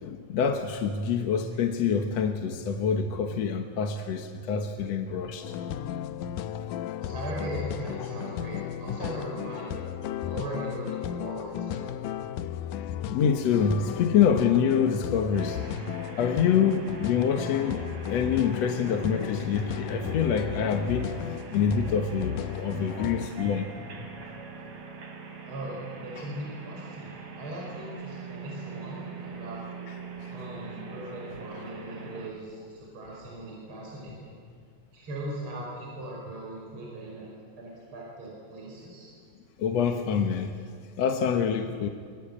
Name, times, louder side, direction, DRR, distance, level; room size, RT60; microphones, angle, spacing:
voice 1, 0.0-5.5 8.0-8.1 9.0-9.1 12.2-12.3 13.1-15.6 16.2-17.8 18.1-21.2 21.5-23.7 26.2-26.3 30.2-30.3 39.6-40.6 41.0-41.9, left 7 dB, 65° left, 4 dB, 2.2 m, -26 dB
sound 1, 5.4-23.3, left 10 dB, 85° left, 2.3 m, -35 dB
voice 2, 7.0-9.8 10.1-11.9 25.5-29.6 30.3-34.3 34.9-39.1, right 1 dB, 40° right, -3 dB, 6.0 m, -39 dB
sound 2, 15.3-32.3, right 4 dB, 60° right, 3.9 m, -42 dB
25.0 x 23.5 x 8.7 m, 2.1 s
omnidirectional pair, 3.5 m